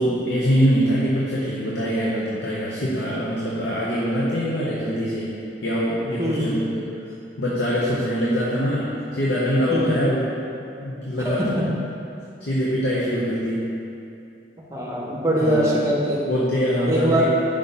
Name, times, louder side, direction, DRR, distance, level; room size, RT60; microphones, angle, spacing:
voice 1, 0.0-5.3 5.6-7.0 7.4-10.2 10.8-11.6 12.4-13.7 15.4-15.7 16.3-17.4, equal, 70° left, -6 dB, 0.8 m, -23 dB
voice 2, 11.2-11.7 14.7-16.3 16.9-17.3, equal, 15° right, -4 dB, 0.8 m, -22 dB
5.0 x 4.0 x 5.4 m, 2.6 s
head